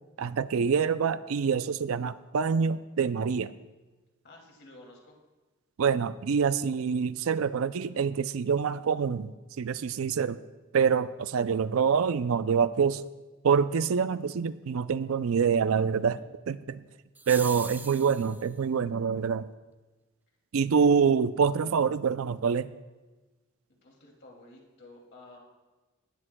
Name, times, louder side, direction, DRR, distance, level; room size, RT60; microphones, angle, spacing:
voice 1, 0.2-3.5 5.8-10.4 10.7-13.0 13.4-16.2 16.5-16.8 17.3-19.5 20.5-22.7, right 6 dB, 80° right, 15 dB, 0.4 m, -26 dB
voice 2, 4.2-5.2 16.0-16.2 20.7-20.8 23.8-25.4, left 2 dB, 55° left, -1 dB, 2.6 m, -52 dB
sound 1, 17.1-18.5, right 3 dB, 10° right, 0.3 m, -41 dB
18.5 x 12.5 x 2.3 m, 1.2 s
head